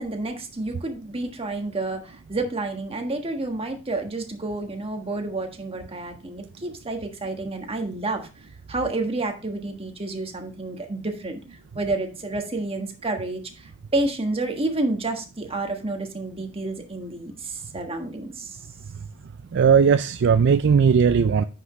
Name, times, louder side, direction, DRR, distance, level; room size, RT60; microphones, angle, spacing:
voice 1, 0.0-8.3 8.7-11.4 11.7-18.6, right 2 dB, 30° right, 1.5 m, -29 dB
voice 2, 19.5-21.5, right 6 dB, 60° right, 0.4 m, -17 dB
9.7 x 5.9 x 3.2 m
head